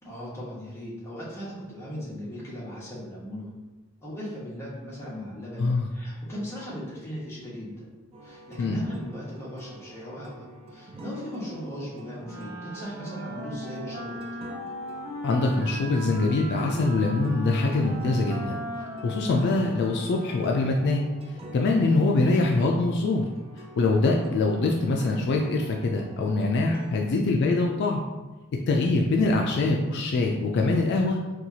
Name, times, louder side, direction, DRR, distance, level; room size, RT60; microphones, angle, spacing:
voice 1, 0.0-3.5 4.0-7.9 8.2-14.2 27.0-27.3, left 1 dB, 15° left, -7 dB, 1.0 m, -38 dB
sound 1, 8.1-27.0, right 1 dB, 30° right, 0.3 m, -46 dB
voice 2, 8.6-8.9 15.2-18.6 19.0-21.1 21.5-23.3 23.6-28.0 28.7-31.2, left 2 dB, 55° left, 1 dB, 0.3 m, -24 dB
Wind instrument woodwind instrument, 12.2-20.9, equal, 10° right, 0.7 m, -38 dB
4.4 x 2.3 x 2.7 m, 1.1 s
head